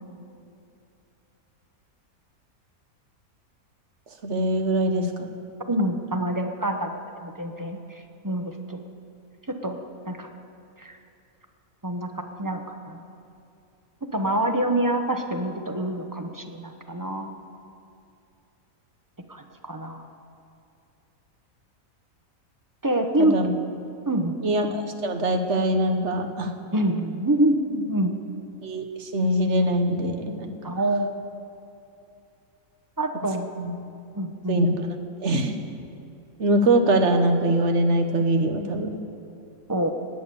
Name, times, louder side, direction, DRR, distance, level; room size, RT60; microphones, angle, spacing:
voice 1, 4.2-5.3 23.2-23.5 24.4-26.5 28.6-30.8 33.6-33.7 34.5-34.9 35.2-35.5 36.4-38.9, right 1 dB, 55° right, 6 dB, 1.4 m, -23 dB
voice 2, 5.7-8.8 9.5-9.8 10.1-10.3 10.8-11.0 11.8-13.0 14.1-17.3 19.3-20.0 22.8-23.4 24.1-24.4 26.7-28.1 30.6-31.1 33.0-33.5 34.1-34.6 39.7-39.9, right 1 dB, 15° right, 5 dB, 0.9 m, -26 dB
18.5 x 9.2 x 6.9 m, 2.7 s
omnidirectional pair, 1.5 m